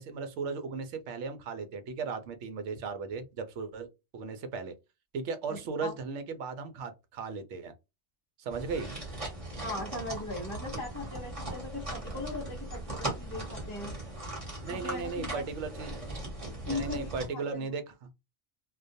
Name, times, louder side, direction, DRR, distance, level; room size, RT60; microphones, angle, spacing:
voice 1, 0.0-3.9 4.1-4.7 5.1-7.7 8.4-8.9 14.6-16.1 16.6-18.1, right 5 dB, 75° right, 0.9 m, -36 dB
voice 2, 5.5-5.9 9.6-13.9 14.7-15.4 16.6-17.7, left 2 dB, 25° left, 0.5 m, -39 dB
sound 1, 8.5-17.3, right 1 dB, 30° right, 1.0 m, -39 dB
2.3 x 2.2 x 2.6 m
omnidirectional pair, 1.2 m